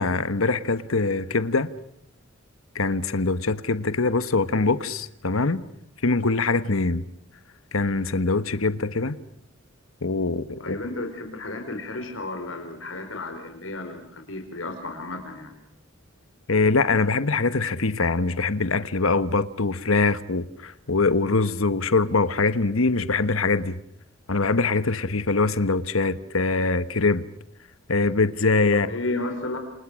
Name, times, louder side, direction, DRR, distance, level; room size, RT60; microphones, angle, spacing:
voice 1, 0.0-1.7 2.7-5.6 6.0-7.0 7.7-9.2 10.0-10.7 16.5-23.8 24.3-27.2 27.9-28.9, left 3 dB, 85° left, 1.3 m, -23 dB
voice 2, 10.6-15.5 28.7-29.6, left 2 dB, 70° left, 4.8 m, -33 dB
29.0 x 29.0 x 6.4 m
head